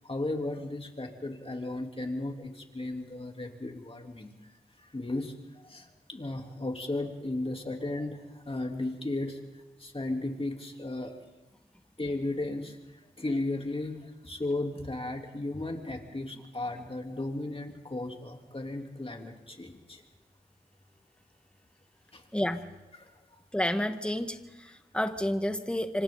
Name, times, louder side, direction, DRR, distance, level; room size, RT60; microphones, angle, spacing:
voice 1, 0.0-4.3 4.8-9.4 9.8-11.1 12.0-12.8 13.2-20.0 22.1-22.2 23.0-23.4, left 2 dB, 35° left, 2 dB, 3.3 m, -35 dB
voice 2, 22.3-22.7 23.5-26.0, left 1 dB, 5° left, 7 dB, 1.5 m, -30 dB
26.5 x 25.5 x 4.0 m, 1.1 s
cardioid pair, 50°, 17 cm